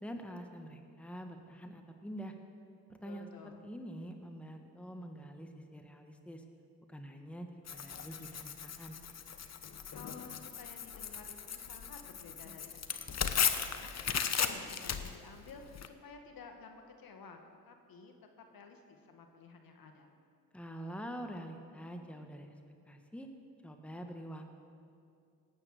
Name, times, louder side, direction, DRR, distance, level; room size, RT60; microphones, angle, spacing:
voice 1, 0.0-2.3 2.9-6.4 6.9-9.0 20.5-22.5 22.9-23.3 23.6-24.6, equal, 5° left, 5 dB, 1.5 m, -46 dB
voice 2, 3.0-3.6 9.9-17.4 17.7-20.1, left 4 dB, 55° left, 4 dB, 1.9 m, -53 dB
Tearing, 7.7-15.9, left 7 dB, 40° left, 1.1 m, -37 dB
18.5 x 8.9 x 6.6 m, 2.4 s
hypercardioid pair, 55°, 42 cm